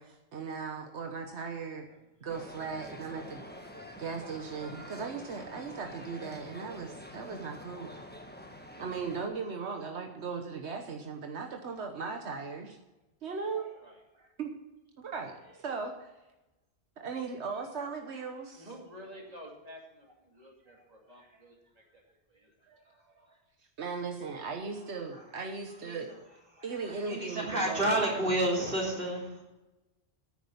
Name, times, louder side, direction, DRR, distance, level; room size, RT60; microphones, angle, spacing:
voice 1, 0.0-1.9 2.2-3.5 4.0-8.0 8.7-12.8 13.2-13.7 14.4-14.5 15.0-15.4 15.6-16.1 17.0-18.7 23.8-26.1 26.6-27.8, right 5 dB, 90° right, 4 dB, 1.4 m, -38 dB
sound 1, 2.3-9.3, left 1 dB, 10° left, 1.3 m, -47 dB
voice 2, 3.4-5.1 5.7-5.9 7.0-7.5 8.0-8.6 13.5-13.8 14.1-14.3 15.3-15.4 20.4-21.4 22.7-23.4 24.7-29.4, right 1 dB, 55° right, -2 dB, 3.5 m, -35 dB
voice 3, 5.5-6.1 13.8-14.0 18.5-22.0 22.3-22.7, equal, 35° right, -1 dB, 2.6 m, -51 dB
10.0 x 9.5 x 6.9 m, 1.0 s
omnidirectional pair, 1.1 m